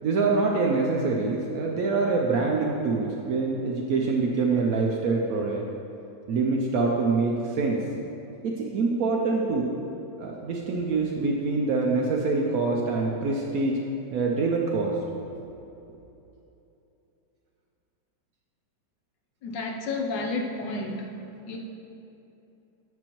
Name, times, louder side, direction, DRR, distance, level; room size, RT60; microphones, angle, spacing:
voice 1, 0.0-5.7 6.3-7.8 8.4-9.7 10.2-13.8 14.1-15.0 15.3-15.4, right 3 dB, 70° right, -1 dB, 0.9 m, -25 dB
voice 2, 19.4-21.1 21.5-21.6, left 3 dB, 75° left, 1 dB, 1.4 m, -31 dB
7.8 x 7.0 x 3.0 m, 2.9 s
omnidirectional pair, 2.0 m